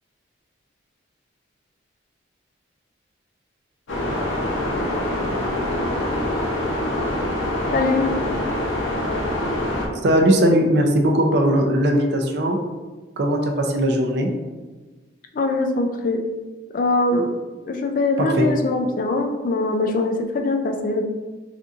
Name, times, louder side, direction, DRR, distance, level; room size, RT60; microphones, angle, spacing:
sound 1, 3.9-9.9, left 1 dB, 85° left, 0.7 m, -24 dB
voice 1, 7.7-8.1 15.3-16.2 16.7-17.3 17.7-21.0, left 2 dB, 45° left, 4 dB, 0.3 m, -22 dB
voice 2, 10.0-12.6 13.2-14.3 18.2-18.5, equal, 60° right, 3 dB, 0.4 m, -19 dB
3.7 x 2.5 x 2.4 m, 1.2 s
head